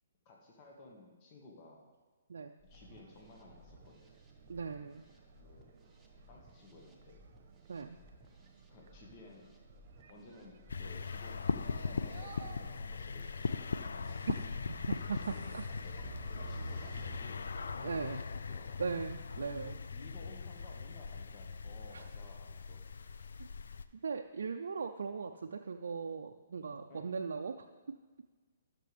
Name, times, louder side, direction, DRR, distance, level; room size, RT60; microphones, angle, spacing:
voice 1, 0.2-1.9 2.6-4.2 5.3-5.7 6.3-7.2 8.7-9.5 10.1-14.2 15.1-18.2 18.5-18.8 19.3-23.3 26.9-27.2, left 3 dB, 35° left, -1 dB, 1.7 m, -56 dB
sound 1, 2.6-17.3, equal, ahead, 1.5 m, -62 dB
sound 2, 2.7-17.2, right 4 dB, 45° right, 1.1 m, -53 dB
voice 2, 4.5-5.0 7.7-8.0 14.3-14.4 14.7-15.7 17.8-18.2 18.8-19.8 21.9-22.0 23.4-23.5 24.0-27.7, right 5 dB, 75° right, 3 dB, 0.5 m, -39 dB
sound 3, 10.7-23.8, left 5 dB, 75° left, 0.4 m, -40 dB
14.5 x 6.7 x 3.5 m, 1.4 s
hypercardioid pair, 140°, 0 cm